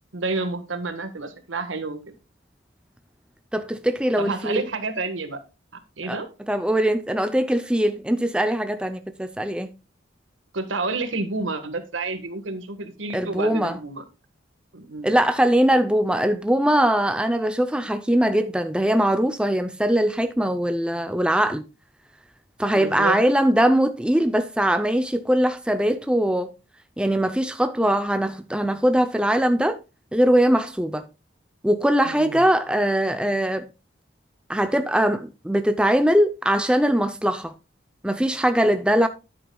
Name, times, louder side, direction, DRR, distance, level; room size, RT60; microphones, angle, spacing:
voice 1, 0.1-2.1 4.2-5.4 5.7-6.3 10.5-14.0 14.7-15.2 22.7-23.2 32.0-32.4, right 3 dB, 85° right, 1.4 m, -30 dB
voice 2, 3.5-4.6 6.1-6.2 6.5-9.7 13.1-13.8 15.0-21.7 22.6-26.5 27.0-29.8 30.1-31.1 31.6-33.7 34.5-37.5 38.0-39.1, right 1 dB, 5° right, 0.5 m, -21 dB
10.0 x 8.6 x 2.3 m
head